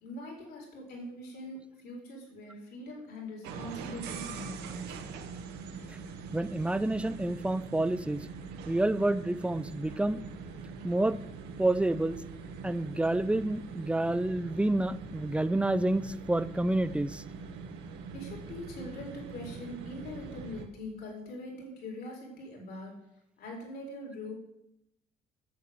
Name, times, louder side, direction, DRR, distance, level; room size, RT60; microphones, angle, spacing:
voice 1, 0.0-5.0 18.1-23.0 23.4-24.3, left 1 dB, 65° left, -1 dB, 4.2 m, -42 dB
sound 1, 3.4-20.7, right 5 dB, 90° right, 1.3 m, -43 dB
voice 2, 6.3-8.3 8.7-10.2 10.8-11.2 11.6-12.2 12.6-17.2, right 1 dB, 5° right, 15 dB, 0.5 m, -28 dB
8.4 x 7.4 x 7.9 m, 0.82 s
cardioid pair, 110°, 17 cm